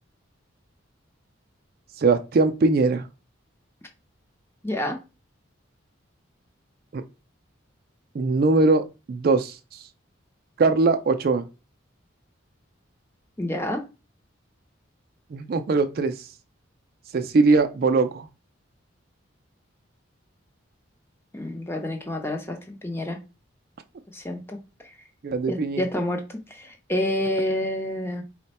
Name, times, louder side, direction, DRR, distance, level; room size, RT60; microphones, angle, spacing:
voice 1, 2.0-3.1 6.9-7.0 8.1-9.8 10.6-11.5 15.3-16.3 17.1-18.3 25.2-25.8, right 3 dB, 50° right, 7 dB, 0.3 m, -21 dB
voice 2, 4.6-5.0 13.4-13.8 21.3-23.2 24.1-24.6 24.8-24.9 25.5-28.2, left 1 dB, 10° left, 3 dB, 0.6 m, -28 dB
4.2 x 2.1 x 4.1 m, 0.29 s
head